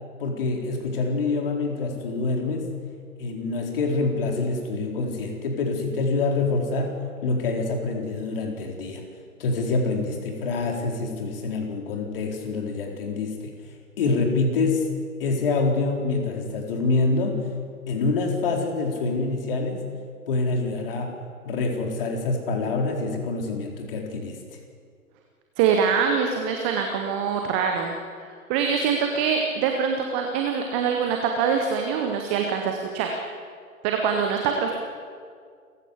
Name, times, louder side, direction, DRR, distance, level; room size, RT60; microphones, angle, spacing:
voice 1, 0.2-2.7 3.2-6.9 7.2-9.0 9.4-13.5 14.0-14.8 15.2-17.4 17.9-19.8 20.3-21.1 21.4-24.4, left 3 dB, 40° left, 2 dB, 4.3 m, -26 dB
voice 2, 25.6-33.1 33.8-34.7, right 6 dB, 10° right, 3 dB, 0.6 m, -24 dB
29.0 x 15.0 x 8.3 m, 2.1 s
figure-of-eight pair, 130°, 44 cm